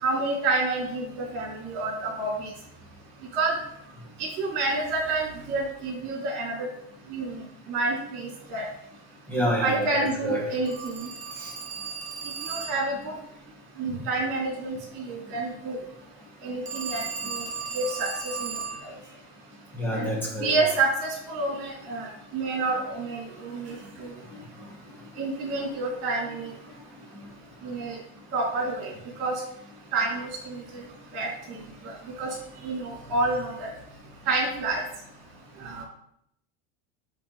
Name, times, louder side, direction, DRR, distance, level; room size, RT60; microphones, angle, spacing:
voice 1, 0.0-2.5 3.3-3.6 4.2-6.7 7.1-8.6 9.6-11.1 12.4-13.1 13.8-15.8 16.4-17.4 17.7-18.5 18.8-18.9 19.9-20.1 20.4-24.1 25.2-26.5 27.6-28.0 28.3-29.4 29.9-30.8 31.1-32.3 32.6-33.7 34.2-34.8 35.6-35.8, right 3 dB, 50° right, -1 dB, 3.1 m, -29 dB
voice 2, 9.3-10.4 11.4-11.5 19.7-20.6, equal, 5° left, -4 dB, 2.0 m, -28 dB
Telephone, 10.7-13.0 16.7-18.9, right 5 dB, 20° right, 0.9 m, -35 dB
9.9 x 4.0 x 4.0 m, 0.72 s
cardioid pair, 165°, 33 cm